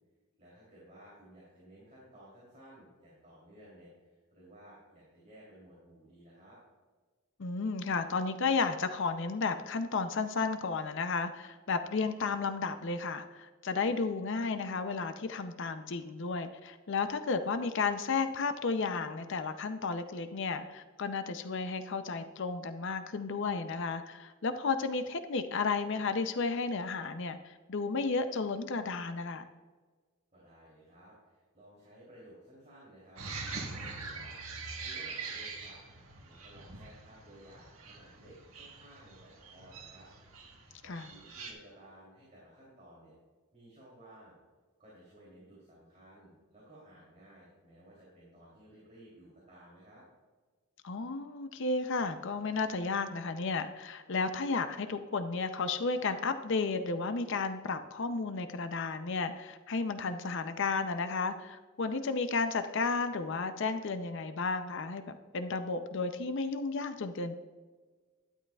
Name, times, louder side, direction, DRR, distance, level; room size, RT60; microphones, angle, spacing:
voice 1, 0.4-6.6 30.3-35.8 36.2-40.1 40.8-43.1 43.5-44.4 44.8-50.0, right 1 dB, 30° right, -7 dB, 3.1 m, -56 dB
voice 2, 7.4-29.4 40.8-41.1 50.8-67.4, left 4 dB, 55° left, 9 dB, 0.5 m, -33 dB
sound 1, 33.2-41.5, right 4 dB, 70° right, 1.4 m, -44 dB
12.0 x 10.0 x 2.4 m, 1.4 s
head